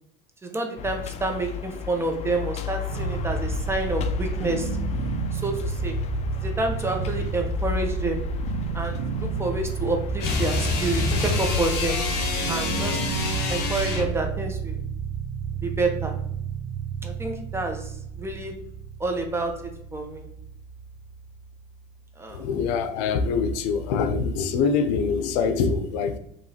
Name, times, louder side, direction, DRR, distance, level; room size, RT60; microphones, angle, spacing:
voice 1, 0.4-4.7 5.3-6.0 6.4-8.2 8.7-12.0 12.5-13.0 13.5-14.8 15.6-16.1 17.0-17.9 18.2-18.5 19.0-19.5 19.9-20.3 22.2-22.4, right 2 dB, 10° right, 0.7 m, -28 dB
sound 1, 0.8-12.4, left 6 dB, 30° left, 0.4 m, -33 dB
sound 2, 2.9-21.9, right 7 dB, 60° right, 0.5 m, -32 dB
sound 3, 10.2-14.2, left 4 dB, 50° left, 1.5 m, -27 dB
voice 2, 22.3-26.2, left 5 dB, 75° left, 0.6 m, -24 dB
5.3 x 3.0 x 2.8 m
supercardioid pair, 125°, 21 cm